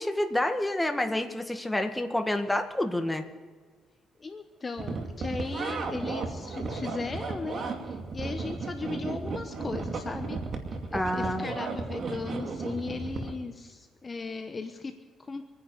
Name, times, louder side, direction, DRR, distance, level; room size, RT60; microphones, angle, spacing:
voice 1, 0.0-3.3 10.9-11.5, left 1 dB, 10° left, 5 dB, 1.7 m, -28 dB
voice 2, 4.2-10.4 10.9-15.4, left 4 dB, 30° left, 7 dB, 1.1 m, -37 dB
sound 1, 4.8-13.3, right 4 dB, 55° right, 2.5 m, -34 dB
26.0 x 10.0 x 4.9 m, 1.5 s
cardioid pair, 90°, 0 cm